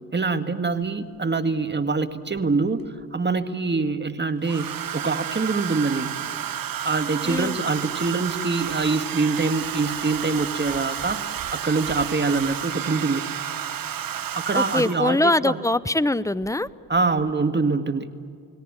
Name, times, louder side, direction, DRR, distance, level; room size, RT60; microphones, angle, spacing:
voice 1, 0.1-6.1 6.8-13.2 14.3-15.6 16.9-18.1, right 3 dB, 25° right, 9 dB, 1.9 m, -24 dB
Domestic sounds home sounds, 0.8-0.9 2.4-3.0 4.4-15.2 16.4-16.7 17.0-17.3, right 10 dB, 50° right, 1.2 m, -31 dB
voice 2, 7.2-7.6 14.5-16.7, left 2 dB, 5° left, 19 dB, 0.7 m, -23 dB
29.5 x 18.5 x 8.9 m, 2.4 s
supercardioid pair, 55°, 44 cm